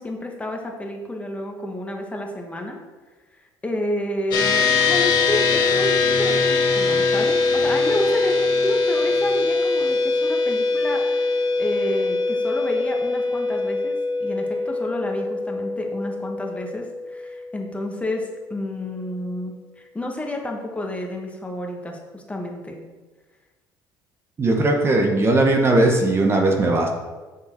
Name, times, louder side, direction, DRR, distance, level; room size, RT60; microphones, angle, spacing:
voice 1, 0.0-2.7 3.6-11.3 11.6-22.8, left 1 dB, 15° left, 1 dB, 1.5 m, -30 dB
sound 1, 4.3-17.9, left 4 dB, 60° left, 2.1 m, -22 dB
voice 2, 24.4-26.9, right 2 dB, 30° right, 2 dB, 1.2 m, -18 dB
7.1 x 6.6 x 4.6 m, 1.3 s
supercardioid pair, 95°, 8 cm